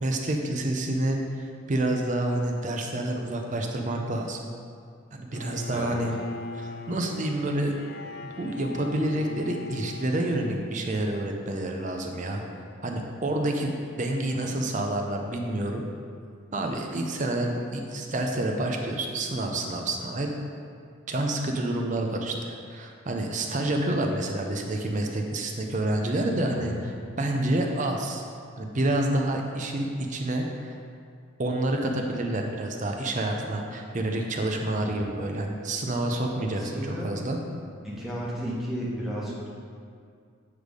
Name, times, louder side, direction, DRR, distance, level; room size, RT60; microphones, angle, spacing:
voice 1, 0.0-4.4 5.1-6.1 6.5-7.7 8.2-12.4 12.8-15.8 16.5-20.3 21.1-28.3 28.6-30.7 31.4-37.4, right 1 dB, 35° right, 2 dB, 0.6 m, -28 dB
Bowed string instrument, 5.3-11.4, left 3 dB, 45° left, 0.3 m, -41 dB
voice 2, 26.4-26.8 34.7-35.0 36.5-37.1 37.8-39.5, equal, ahead, -7 dB, 1.1 m, -33 dB
8.2 x 3.3 x 5.1 m, 2.3 s
head